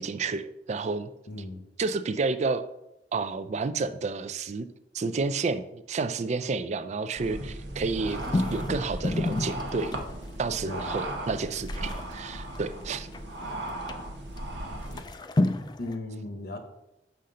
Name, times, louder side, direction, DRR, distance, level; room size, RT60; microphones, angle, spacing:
voice 1, 0.0-1.1 1.8-2.6 3.1-4.7 4.9-10.0 10.4-13.1, right 4 dB, 40° right, 12 dB, 0.4 m, -30 dB
voice 2, 1.3-1.6 10.6-10.9 15.8-16.6, left 2 dB, 60° left, 7 dB, 0.9 m, -36 dB
sound 1, 7.2-15.0, right 1 dB, 85° right, 1.0 m, -36 dB
sound 2, 7.8-10.3 10.9-11.0 11.2-13.3 13.9-14.0 14.4-14.5 14.8-16.0, left 2 dB, 25° left, 0.4 m, -30 dB
6.5 x 5.7 x 3.8 m, 0.87 s
head